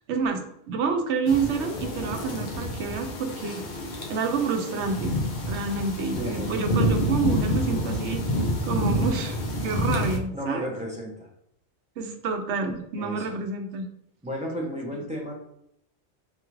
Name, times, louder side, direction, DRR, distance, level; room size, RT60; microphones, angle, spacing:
voice 1, 0.1-3.6 4.1-5.2 5.5-8.2 8.6-9.4 9.6-10.7 12.0-13.8, right 5 dB, 80° right, 5 dB, 0.9 m, -28 dB
sound 1, 1.3-10.2, equal, 50° left, 0.7 m, -28 dB
voice 2, 6.1-6.5 9.9-11.3 13.0-13.3 14.2-15.4, equal, 10° right, -2 dB, 0.6 m, -34 dB
5.3 x 2.4 x 3.0 m, 0.72 s
omnidirectional pair, 1.2 m